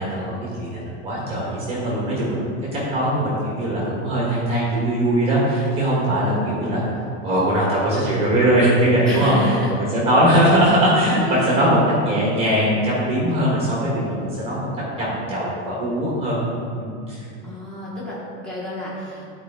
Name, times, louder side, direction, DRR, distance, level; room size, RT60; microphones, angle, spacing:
voice 1, 0.0-2.4 2.9-6.8 7.2-9.3 9.7-14.7 15.0-16.4 16.8-17.2, right 1 dB, 15° right, -6 dB, 1.4 m, -20 dB
voice 2, 9.0-9.7 10.1-10.6 11.0-11.9 17.4-19.2, equal, ahead, -8 dB, 1.0 m, -29 dB
11.0 x 4.8 x 3.6 m, 2.4 s
supercardioid pair, 170°, 37 cm